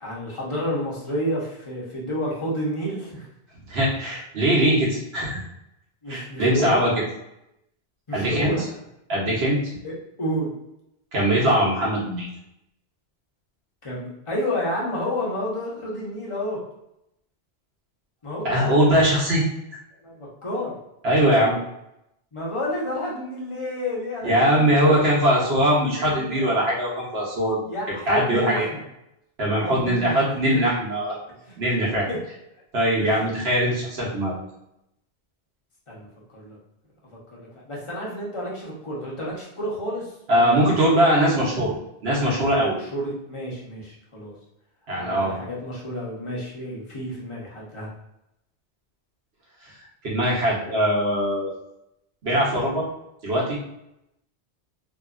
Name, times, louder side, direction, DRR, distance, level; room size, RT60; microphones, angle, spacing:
voice 1, 0.0-3.3 6.0-6.8 8.1-8.6 9.8-10.5 13.8-16.6 18.2-18.8 20.0-20.7 22.3-24.9 25.2-25.6 26.0-26.6 27.6-28.8 29.6-30.6 31.4-31.6 32.1-32.2 33.0-33.2 35.9-36.6 37.3-41.2 41.5-41.6 42.7-44.3 45.0-47.9, equal, 30° left, -5 dB, 0.9 m, -30 dB
voice 2, 3.7-5.4 6.1-6.9 8.1-8.5 9.1-9.6 11.1-12.3 18.4-19.4 21.0-21.5 24.2-27.6 28.1-28.7 29.4-31.1 31.6-32.1 32.7-34.3 40.3-41.7 42.0-42.8 44.9-45.3 50.0-51.5 52.2-52.8 53.2-53.6, equal, 75° right, -4 dB, 1.2 m, -21 dB
2.8 x 2.4 x 2.4 m, 0.83 s
omnidirectional pair, 1.1 m